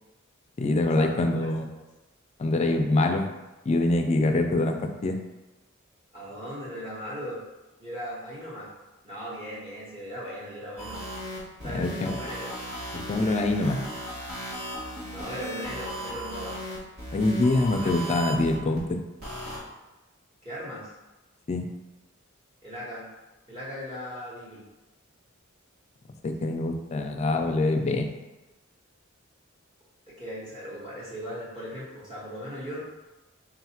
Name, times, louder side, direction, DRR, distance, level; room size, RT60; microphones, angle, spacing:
voice 1, 0.6-1.6 2.4-3.3 3.7-5.2 11.7-12.1 12.9-13.9 17.1-19.0 21.5-21.7 26.2-28.1, left 2 dB, 35° left, 5 dB, 0.4 m, -25 dB
voice 2, 6.1-7.4 7.8-8.7 9.0-11.0 11.6-12.5 15.1-16.6 17.7-17.9 20.4-20.9 22.6-23.1 23.5-24.6 30.1-32.8, equal, 25° right, -9 dB, 1.1 m, -38 dB
sound 1, 10.8-18.8 19.2-19.6, equal, 75° right, 1.2 m, -36 dB
3.7 x 2.4 x 4.3 m, 1.1 s
head